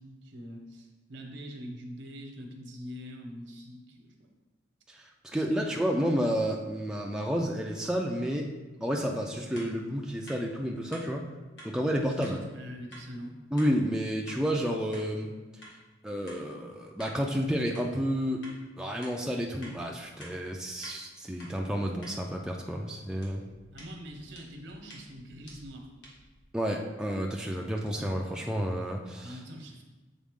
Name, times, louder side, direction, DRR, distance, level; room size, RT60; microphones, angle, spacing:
voice 1, 0.0-4.3 5.3-5.8 12.2-13.4 23.7-26.1 29.2-29.8, equal, 70° right, 2 dB, 1.0 m, -44 dB
voice 2, 4.9-8.5 8.8-11.3 11.6-12.4 13.5-15.3 16.0-18.4 18.7-23.4 26.5-29.4, equal, 5° right, 0 dB, 0.4 m, -30 dB
sound 1, 9.5-9.7 10.3-10.4 10.9-11.1 11.6-11.7 12.2-12.4 12.9-13.0 13.6-13.7 14.3-14.4 14.9-15.1 15.6-15.7 16.3-16.4 17.0-17.2 17.7-17.9 18.4-18.6 19.0-19.2 19.6-19.8 20.2-20.3 20.8-21.0 21.4-21.5 22.0-22.1 23.2-26.4, equal, 70° left, 1.7 m, -49 dB
7.3 x 4.1 x 3.6 m, 1.2 s
head